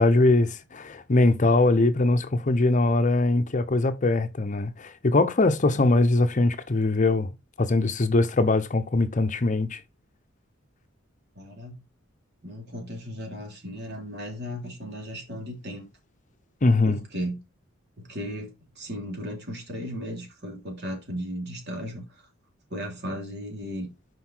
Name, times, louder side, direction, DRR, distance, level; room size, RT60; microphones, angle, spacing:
voice 1, 0.0-7.3 7.6-9.8 16.6-17.0, left 2 dB, 40° left, 0.7 m, -22 dB
voice 2, 11.3-11.8 12.4-15.9 16.8-17.4 18.0-22.3 22.7-23.9, equal, 55° right, 3.3 m, -36 dB
5.8 x 5.3 x 4.4 m
head